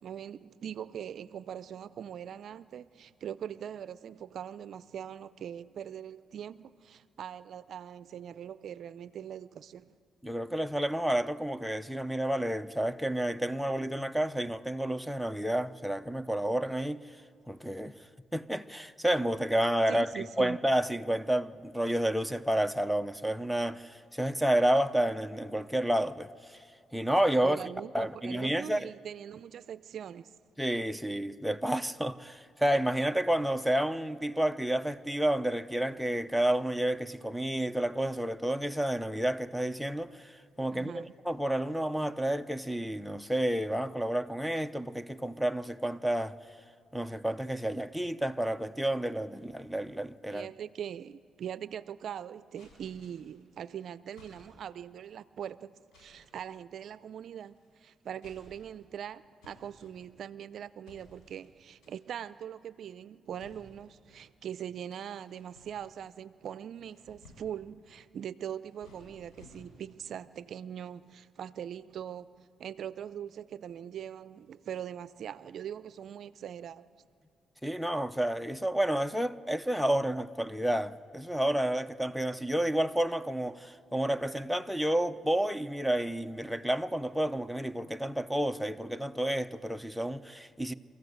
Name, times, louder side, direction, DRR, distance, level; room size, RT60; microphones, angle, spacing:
voice 1, 0.0-9.9 19.9-20.6 27.4-30.3 40.7-41.1 50.3-76.9, right 9 dB, 65° right, 0.5 m, -42 dB
voice 2, 10.2-17.0 17.5-17.9 18.3-26.6 26.9-27.6 27.9-28.9 30.6-46.3 46.9-50.5 77.6-90.7, right 1 dB, ahead, 0.6 m, -30 dB
sound 1, 52.5-53.4 54.1-54.8 55.9-56.4 57.4-57.8 58.1-58.9 59.4-60.4 60.9-61.5 61.8-62.2 63.4-64.2 64.8-66.1 66.6-67.7 68.4-70.0, left 2 dB, 80° left, 7.3 m, -58 dB
25.0 x 15.0 x 8.0 m
cardioid pair, 90°, 0 cm